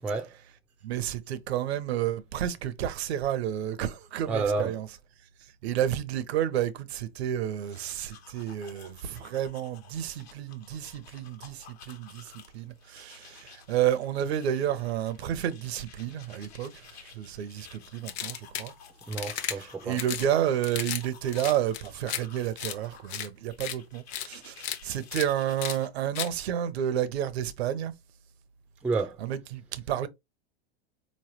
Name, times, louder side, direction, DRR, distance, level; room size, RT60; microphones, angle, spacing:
voice 1, 0.0-0.3 4.3-4.7 19.1-20.0 28.8-29.2, right 4 dB, 5° right, 0.3 m, -30 dB
voice 2, 0.8-4.9 5.6-18.7 19.5-27.9 29.2-30.1, right 10 dB, 80° right, 0.7 m, -31 dB
sound 1, 7.5-25.9, left 7 dB, 80° left, 1.2 m, -53 dB
sound 2, 18.1-18.7 19.1-19.5 19.9-20.3 20.6-21.0 21.3-22.2 22.6-22.7 23.1-23.3 23.6-23.7 24.1-24.3 24.6-24.8 25.1-25.3 25.6-25.7 26.1-26.3, left 10 dB, 50° left, 0.8 m, -34 dB
4.4 x 3.1 x 2.9 m
supercardioid pair, 120°, 31 cm